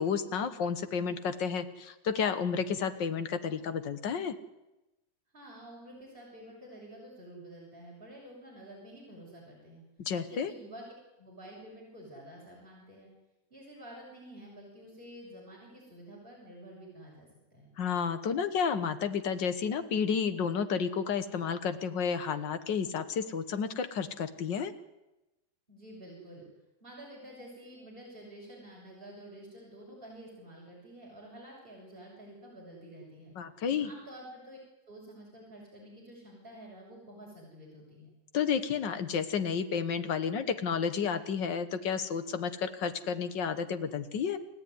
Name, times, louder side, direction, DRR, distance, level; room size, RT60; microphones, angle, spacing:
voice 1, 0.0-4.4 10.0-10.5 17.8-24.7 33.4-33.9 38.3-44.4, left 6 dB, 75° left, 11 dB, 1.9 m, -31 dB
voice 2, 5.3-9.8 10.3-10.9 11.2-13.1 13.5-17.7 25.7-26.5 26.8-33.3 33.8-34.6 34.9-38.1, right 1 dB, 30° right, -4 dB, 6.9 m, -49 dB
29.0 x 14.0 x 9.7 m, 1.0 s
omnidirectional pair, 2.0 m